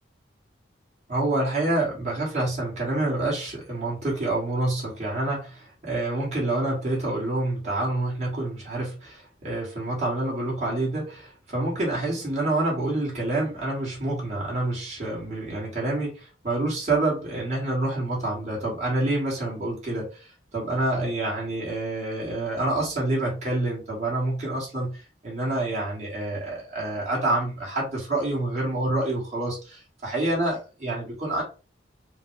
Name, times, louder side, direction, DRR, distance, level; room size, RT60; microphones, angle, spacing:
voice 1, 1.1-31.4, right 2 dB, 40° right, -5 dB, 1.9 m, -27 dB
4.4 x 2.3 x 3.3 m, 0.34 s
head